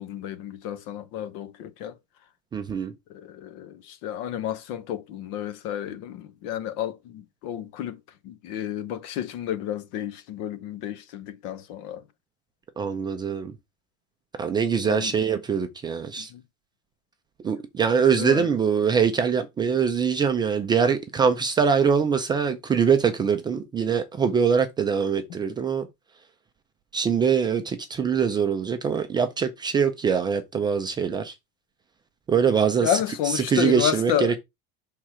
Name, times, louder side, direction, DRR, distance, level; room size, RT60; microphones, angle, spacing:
voice 1, 0.0-2.0 3.1-12.0 14.8-15.1 16.2-16.4 18.2-18.5 32.8-34.4, left 10 dB, 60° left, 0.8 m, -31 dB
voice 2, 2.5-2.9 12.8-13.5 14.4-16.3 17.4-25.9 26.9-31.4 32.3-33.0 33.3-34.4, right 6 dB, 15° right, 0.4 m, -23 dB
6.3 x 3.7 x 4.3 m
cardioid pair, 180°, 30 cm